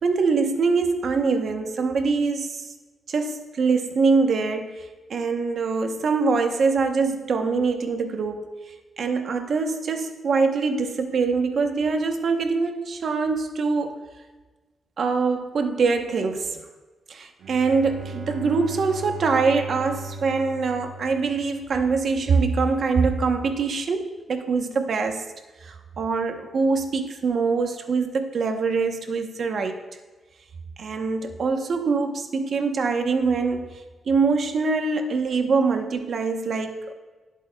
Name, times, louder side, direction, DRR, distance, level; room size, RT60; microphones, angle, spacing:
voice 1, 0.0-2.7 3.1-8.5 9.0-13.9 15.0-16.6 17.1-25.2 25.6-29.8 30.8-33.7 34.1-36.9, right 4 dB, 45° right, 5 dB, 0.9 m, -24 dB
Bowed string instrument, 17.4-22.1, right 2 dB, 70° right, 1.1 m, -38 dB
19.0 x 8.3 x 2.3 m, 1.3 s
wide cardioid pair, 180°, 0 cm